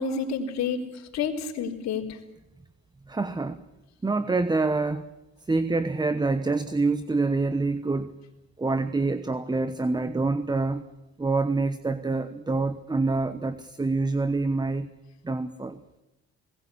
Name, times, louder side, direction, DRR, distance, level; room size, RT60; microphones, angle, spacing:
voice 1, 0.0-2.2, left 5 dB, 65° left, 1 dB, 3.9 m, -29 dB
voice 2, 3.1-3.6 4.0-5.1 5.4-8.1 8.6-10.8 11.2-14.9 15.2-15.8, right 3 dB, 15° right, 12 dB, 1.0 m, -26 dB
20.0 x 18.5 x 8.4 m, 0.96 s
cardioid pair, 100°, 29 cm